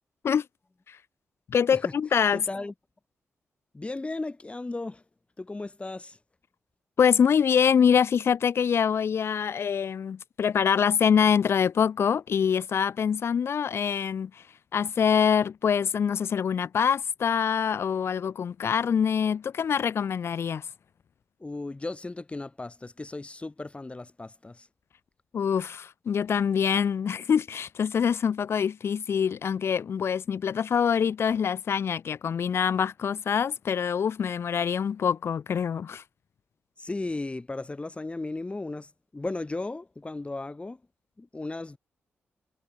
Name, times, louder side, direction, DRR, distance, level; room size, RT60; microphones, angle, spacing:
voice 1, 1.5-2.5 7.0-14.4 14.7-20.7 25.3-36.0, left 7 dB, 65° left, 1.0 m, -25 dB
voice 2, 2.3-2.7 3.7-5.0 5.4-6.2 21.4-24.7 36.8-40.8 41.2-41.8, left 2 dB, 25° left, 1.3 m, -35 dB
supercardioid pair, 50°, 5 cm